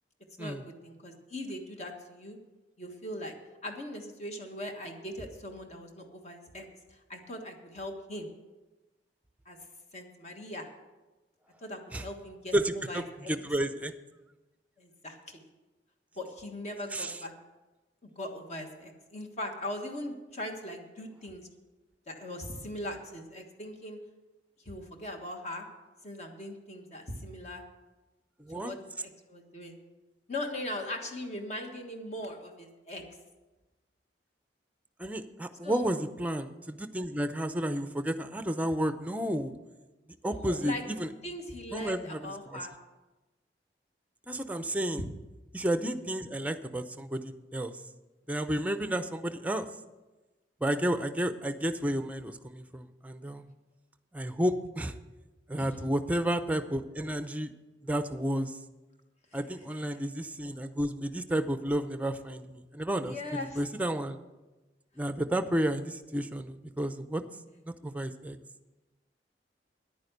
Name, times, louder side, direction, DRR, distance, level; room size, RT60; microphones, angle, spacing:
voice 1, 0.4-2.4 2.8-3.3 3.6-6.7 7.1-8.3 9.4-9.6 9.9-10.7 11.6-13.4 14.8-15.4 16.2-17.3 18.0-21.5 22.1-24.0 24.6-25.7 26.0-27.6 28.5-29.8 30.3-33.0 35.6-35.9 40.3-40.8 41.2-42.7 55.6-55.8 63.0-63.6, left 1 dB, 40° left, 4 dB, 1.4 m, -40 dB
voice 2, 12.5-13.9 16.9-17.2 28.4-28.7 35.0-39.5 40.2-41.1 41.7-42.6 44.3-45.0 45.5-47.8 48.3-49.7 50.6-53.5 54.1-54.9 55.5-57.5 57.8-58.6 59.3-63.2 63.5-64.2 65.0-67.2 67.6-68.4, right 1 dB, 10° right, 10 dB, 0.6 m, -31 dB
10.5 x 9.5 x 6.7 m, 1.1 s
head